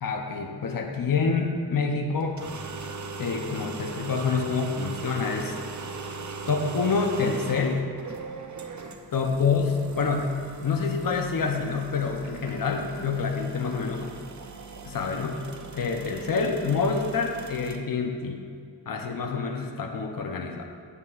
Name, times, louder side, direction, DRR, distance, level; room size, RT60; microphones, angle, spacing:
voice 1, 0.0-2.4 3.2-5.5 6.5-7.8 9.1-10.3 10.6-14.2 14.8-15.4 15.7-18.4 18.9-20.7, left 5 dB, 60° left, 3 dB, 0.7 m, -27 dB
sound 1, 2.2-17.8, right 3 dB, 50° right, 0.6 m, -40 dB
9.6 x 8.2 x 2.4 m, 2.1 s
wide cardioid pair, 55°, 38 cm